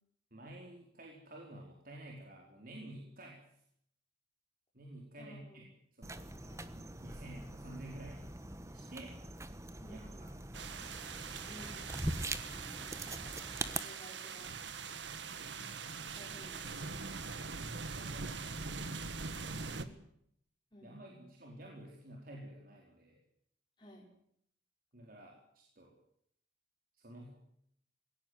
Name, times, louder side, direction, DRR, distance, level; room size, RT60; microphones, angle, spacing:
voice 1, 0.3-3.4 4.7-5.7 5.9-6.4 6.6-8.2 8.6-9.2 9.9-10.7 17.6-19.1 19.4-19.7 20.8-23.2 24.9-25.9 26.9-27.3, right 1 dB, 50° right, -1 dB, 4.5 m, -51 dB
voice 2, 5.2-5.6 6.5-6.6 9.8-10.3 11.5-12.2 12.9-14.5 16.0-17.2 19.7-20.1 20.7-21.2 23.8-24.1, equal, 25° left, -1 dB, 5.7 m, -56 dB
sound 1, 6.0-13.8, right 2 dB, 15° right, 1.3 m, -42 dB
sound 2, 10.5-19.8, right 4 dB, 70° right, 1.8 m, -43 dB
20.5 x 17.5 x 9.7 m, 0.71 s
head